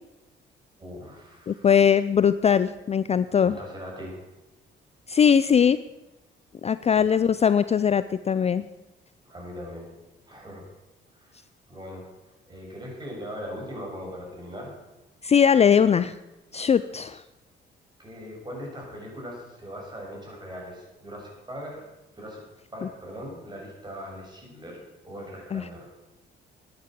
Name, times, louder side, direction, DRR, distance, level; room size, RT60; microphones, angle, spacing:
voice 1, 0.8-1.7 3.4-4.2 6.9-7.1 9.2-9.9 10.3-10.6 11.1-11.4 11.7-12.0 12.5-14.7 18.0-21.8 22.2-22.4 22.7-25.9, equal, 20° right, -2 dB, 6.5 m, -40 dB
voice 2, 1.5-3.6 5.1-5.8 6.6-8.6 15.2-16.1 16.5-17.2 25.5-25.6, left 7 dB, 30° left, 14 dB, 0.4 m, -20 dB
11.5 x 9.7 x 7.6 m, 1.0 s
cardioid pair, 90°, 20 cm